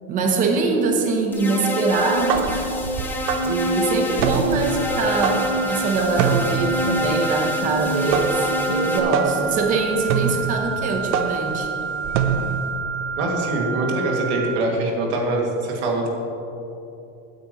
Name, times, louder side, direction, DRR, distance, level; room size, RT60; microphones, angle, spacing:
voice 1, 0.1-2.7 3.0-11.7, right 3 dB, 25° right, 2 dB, 0.9 m, -23 dB
sound 1, 1.3-9.0, left 1 dB, 5° left, 0.5 m, -26 dB
sound 2, 2.0-12.8, right 6 dB, 50° right, 0.6 m, -26 dB
sound 3, 4.4-14.4, right 6 dB, 85° left, 2.2 m, -30 dB
voice 2, 13.2-16.1, right 2 dB, 80° right, -1 dB, 2.4 m, -23 dB
16.0 x 9.3 x 3.1 m, 2.9 s
cardioid pair, 180°, 33 cm